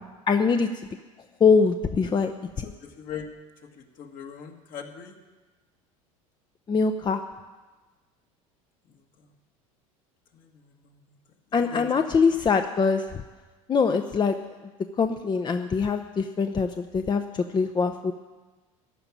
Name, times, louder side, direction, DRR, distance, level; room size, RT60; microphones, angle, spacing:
voice 1, 0.3-0.7 1.4-2.3 2.6-2.7 6.7-7.2 11.5-13.2 13.7-14.4 15.0-18.1, left 5 dB, 25° left, 7 dB, 0.7 m, -23 dB
voice 2, 2.6-3.3 3.8-5.1 10.3-11.2 11.6-11.9, left 7 dB, 50° left, 4 dB, 1.8 m, -40 dB
14.5 x 5.9 x 9.7 m, 1.3 s
hypercardioid pair, 80°, 18 cm